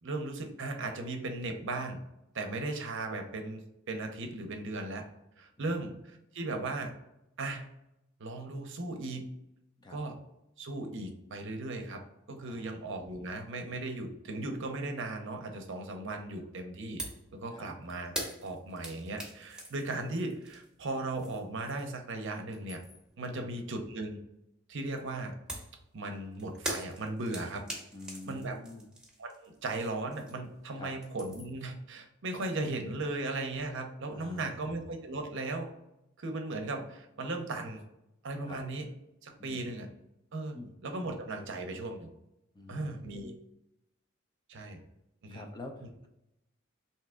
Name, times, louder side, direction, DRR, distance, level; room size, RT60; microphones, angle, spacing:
voice 1, 0.0-2.0 2.3-3.6 3.9-5.0 5.4-6.9 7.4-7.7 8.2-9.3 9.9-10.2 10.6-12.0 12.3-17.0 17.3-18.1 18.4-22.8 23.2-24.2 24.7-25.3 25.9-27.6 28.3-28.5 29.2-35.7 36.2-37.8 38.2-38.8 39.2-39.9 40.3-42.1 42.7-43.3 44.5-44.8 45.2-45.5, right 2 dB, 60° right, 5 dB, 0.7 m, -37 dB
voice 2, 12.5-12.8 17.5-17.7 23.3-23.5 27.9-28.9 30.7-30.9 34.1-34.7 38.4-38.6 39.4-39.6 40.5-40.8 42.5-43.4 45.3-46.1, left 2 dB, 20° left, 3 dB, 0.4 m, -47 dB
sound 1, 17.0-17.3 17.6-22.0 22.4-23.1 25.5-30.6 30.9-31.6, right 1 dB, 5° right, 0.8 m, -42 dB
3.4 x 2.8 x 3.6 m, 0.86 s
head